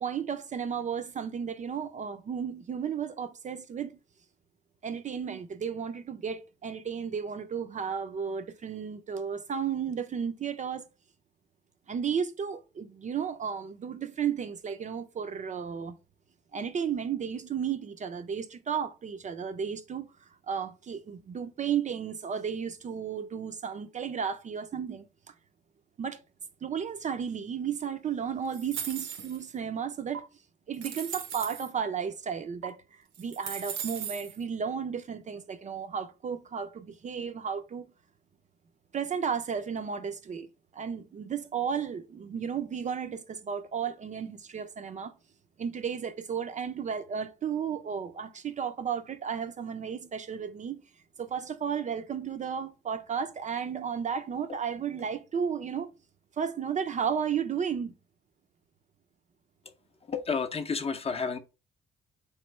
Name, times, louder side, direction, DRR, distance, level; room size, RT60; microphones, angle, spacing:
voice 1, 0.0-4.0 4.8-10.9 11.9-15.9 16.5-20.1 20.5-25.1 26.0-26.2 26.6-30.2 30.7-37.9 38.9-40.5 40.7-45.1 45.6-50.8 51.2-55.9 56.4-57.9, right 7 dB, 40° right, 0.4 m, -33 dB
sound 1, 28.5-29.5 30.1-30.2 30.7-31.7 32.6-32.7 33.1-34.4, right 8 dB, 80° right, 0.7 m, -37 dB
voice 2, 60.1-61.4, left 5 dB, 30° left, 0.6 m, -31 dB
3.8 x 3.1 x 3.2 m
cardioid pair, 90°, 20 cm